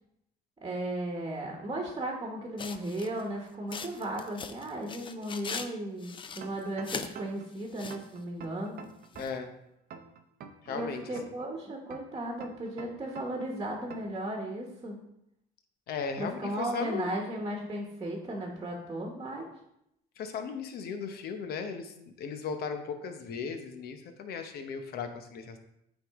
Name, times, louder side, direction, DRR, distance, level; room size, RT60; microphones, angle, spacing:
voice 1, 0.6-8.8 10.7-15.0 16.1-19.5, right 1 dB, 25° right, 0 dB, 1.2 m, -35 dB
sound 1, 2.6-3.2 3.7-5.7 6.0-7.1 7.6-8.1 9.1-9.3, left 5 dB, 30° left, 0.5 m, -40 dB
sound 2, 6.4-7.5 7.9-9.5 9.9-11.5 11.9-13.5 13.9-14.2, right 6 dB, 65° right, 0.7 m, -46 dB
voice 2, 9.2-9.5 10.6-11.0 15.9-17.1 20.2-21.9 22.2-25.6, left 6 dB, 65° left, 7 dB, 0.9 m, -36 dB
9.0 x 3.7 x 3.6 m, 0.79 s
cardioid pair, 110°, 17 cm